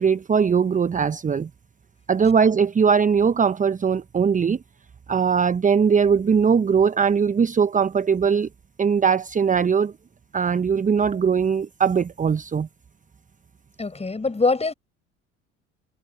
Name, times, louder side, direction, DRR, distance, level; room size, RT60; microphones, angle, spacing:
voice 1, 0.0-1.5 2.1-4.6 5.1-8.5 8.8-9.9 10.3-12.7, right 6 dB, 20° right, 1.1 m, -20 dB
voice 2, 13.8-14.7, left 3 dB, 15° left, 7.2 m, -23 dB
figure-of-eight pair, 65°, 36 cm